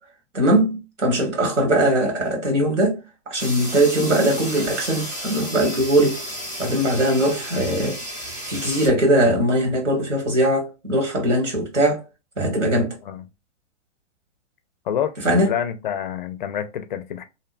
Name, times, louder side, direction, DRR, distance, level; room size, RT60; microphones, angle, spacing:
voice 1, 0.3-3.0 3.3-6.1 6.6-8.0 8.5-12.0 12.4-13.0 15.2-15.5, right 1 dB, 80° right, 1.4 m, -20 dB
sound 1, 3.4-8.9, equal, 10° right, 0.9 m, -33 dB
voice 2, 15.4-17.2, left 9 dB, 45° left, 0.4 m, -27 dB
2.8 x 2.1 x 2.5 m
hypercardioid pair, 120°, 36 cm